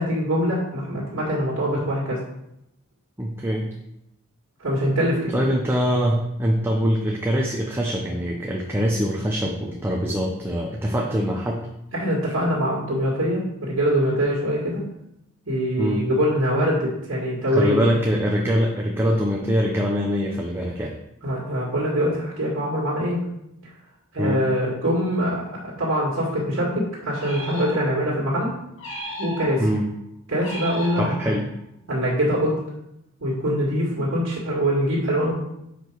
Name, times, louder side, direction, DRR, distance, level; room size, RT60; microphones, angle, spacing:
voice 1, 0.0-2.2 4.6-5.4 11.9-14.8 15.5-17.8 21.2-23.2 24.1-28.5 29.2-29.6 30.3-31.1 31.9-32.6 33.2-35.3, equal, 70° right, -5 dB, 1.9 m, -23 dB
voice 2, 3.2-3.7 5.3-11.6 15.8-16.0 17.5-20.9 24.2-24.4 29.6-29.8 31.0-31.5, equal, 10° right, -1 dB, 0.6 m, -23 dB
sound 1, 27.2-28.2 28.8-29.8 30.4-31.6, left 1 dB, 60° left, 2.8 m, -35 dB
6.4 x 5.0 x 4.6 m, 0.83 s
head